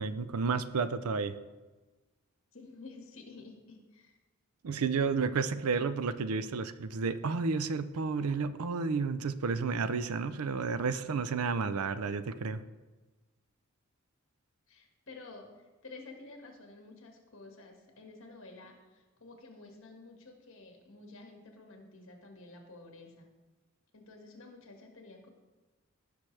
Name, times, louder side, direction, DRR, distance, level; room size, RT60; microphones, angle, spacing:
voice 1, 0.0-1.3 4.6-12.6, right 4 dB, 80° right, 13 dB, 0.5 m, -31 dB
voice 2, 2.5-4.2 14.7-23.3 23.9-25.3, left 3 dB, 60° left, 2 dB, 1.8 m, -51 dB
16.5 x 6.0 x 3.3 m, 1.2 s
head